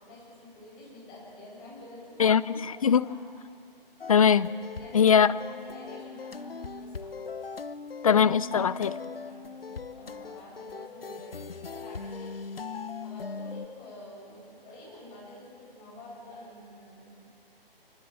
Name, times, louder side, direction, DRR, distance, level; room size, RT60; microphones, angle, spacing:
voice 1, 0.0-3.3 4.8-7.2 9.2-12.4 13.0-17.2, left 1 dB, 15° left, -4 dB, 8.0 m, -48 dB
voice 2, 2.2-3.1 4.1-4.5 4.9-5.3 8.0-9.0, left 7 dB, 35° left, 17 dB, 0.6 m, -21 dB
sound 1, 4.0-13.7, left 5 dB, 75° left, 1.0 m, -40 dB
25.0 x 23.5 x 7.8 m, 2.3 s
figure-of-eight pair, 145°, 29 cm